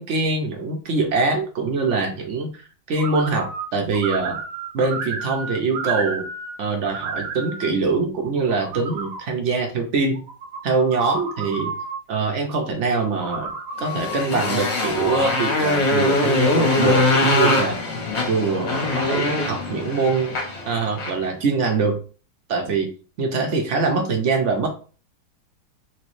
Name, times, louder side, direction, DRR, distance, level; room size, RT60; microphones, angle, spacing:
voice 1, 0.0-2.6 2.9-4.4 4.7-6.3 6.6-10.2 10.6-11.7 12.1-13.5 13.8-17.8 18.3-20.4 20.7-22.0 22.5-22.9 23.2-24.7, right 4 dB, 55° right, 3 dB, 1.0 m, -23 dB
sound 1, 3.0-3.7 3.9-6.6 6.8-7.7 8.2-9.2 10.2-12.0 13.1-14.3, right 4 dB, 90° right, 1.4 m, -31 dB
Motorcycle, 13.8-21.2, left 2 dB, 50° left, 1.0 m, -22 dB
3.1 x 3.1 x 3.1 m, 0.37 s
omnidirectional pair, 1.8 m